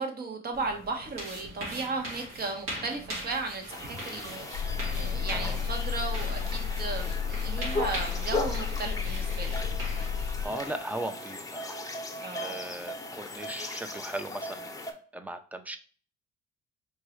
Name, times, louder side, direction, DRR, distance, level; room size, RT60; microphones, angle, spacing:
voice 1, 0.0-9.5 12.2-12.6, right 3 dB, 50° right, 3 dB, 1.3 m, -35 dB
sound 1, 0.5-10.7, right 1 dB, 85° right, 1.9 m, -41 dB
sound 2, 3.7-14.9, left 2 dB, 15° left, 0.9 m, -38 dB
sound 3, 4.5-10.5, left 6 dB, 50° left, 0.4 m, -32 dB
voice 2, 5.3-5.6 10.4-11.8 12.4-14.7 15.1-15.8, right 1 dB, 10° right, 9 dB, 0.5 m, -37 dB
4.5 x 3.0 x 3.1 m, 0.41 s
cardioid pair, 90°, 20 cm